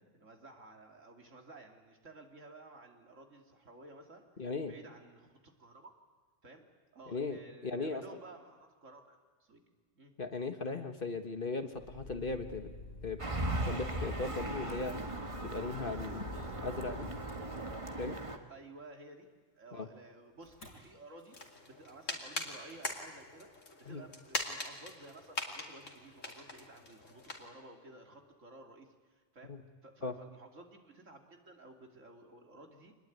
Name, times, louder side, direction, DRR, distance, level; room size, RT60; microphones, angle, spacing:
voice 1, 0.0-4.2 4.6-5.9 6.4-6.7 6.9-9.6 10.0-10.1 16.0-16.9 18.5-19.3 19.6-23.5 23.8-29.5 29.8-32.9, right 2 dB, 70° right, 3 dB, 3.0 m, -54 dB
voice 2, 4.4-4.7 7.1-8.0 10.2-12.7 13.0-13.2 13.7-14.9 15.4-16.2 16.6-17.1 18.0-18.2 19.7-19.9 23.9-24.0 29.5-29.6 30.0-30.1, left 3 dB, 45° left, 7 dB, 1.6 m, -37 dB
Motor vehicle (road), 11.7-18.2 20.4-20.8 21.2-21.6, left 3 dB, 90° left, 6.0 m, -49 dB
sound 1, 13.2-18.4, right 2 dB, 25° right, 1.6 m, -38 dB
sound 2, 21.3-27.5, left 2 dB, 65° left, 3.0 m, -42 dB
26.0 x 20.5 x 9.3 m, 1.4 s
omnidirectional pair, 1.4 m